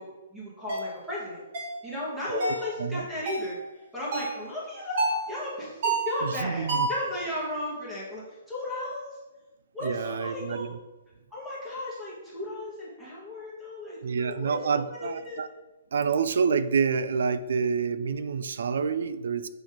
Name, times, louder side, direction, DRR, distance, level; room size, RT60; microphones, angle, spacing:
voice 1, 0.0-1.4 1.8-3.6 3.9-9.2 9.7-10.7 11.3-15.4, left 1 dB, ahead, -10 dB, 1.5 m, -35 dB
sound 1, 0.7-0.9 1.5-1.8 2.4-2.7 3.3-3.5 4.1-4.4 5.0-5.3 5.8-6.2 6.7-7.0, right 3 dB, 35° right, 1.7 m, -28 dB
voice 2, 2.3-3.1 6.2-6.9 9.8-10.8 14.0-15.5 15.9-19.5, right 5 dB, 60° right, 13 dB, 0.4 m, -28 dB
7.5 x 3.1 x 5.0 m, 1.1 s
hypercardioid pair, 175°, 0 cm